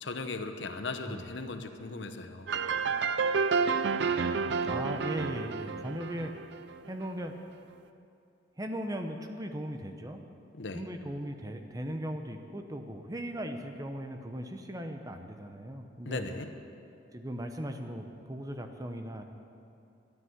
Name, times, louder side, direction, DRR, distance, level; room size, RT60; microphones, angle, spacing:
voice 1, 0.0-2.5 10.5-10.9 16.1-16.5, left 3 dB, 70° left, 7 dB, 1.0 m, -38 dB
sound 1, 2.5-7.1, right 5 dB, 65° right, 0.5 m, -30 dB
voice 2, 4.6-6.3 6.9-7.3 8.6-10.2 10.7-16.3 17.1-19.2, equal, 20° right, 5 dB, 0.9 m, -38 dB
12.5 x 9.3 x 9.5 m, 2.6 s
head